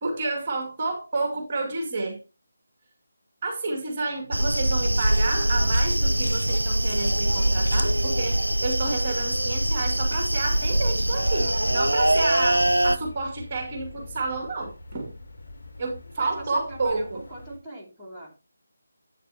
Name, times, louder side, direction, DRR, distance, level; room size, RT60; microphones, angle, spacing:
voice 1, 0.0-2.2 3.4-15.1 15.8-17.2, right 3 dB, 35° right, 2.2 m, -30 dB
sound 1, 4.3-13.0, right 1 dB, 85° right, 0.6 m, -23 dB
sound 2, 7.9-17.6, left 2 dB, 70° left, 3.5 m, -44 dB
voice 2, 16.2-18.3, right 1 dB, 5° right, 2.7 m, -42 dB
11.0 x 8.6 x 2.8 m
figure-of-eight pair, 155°, 0 cm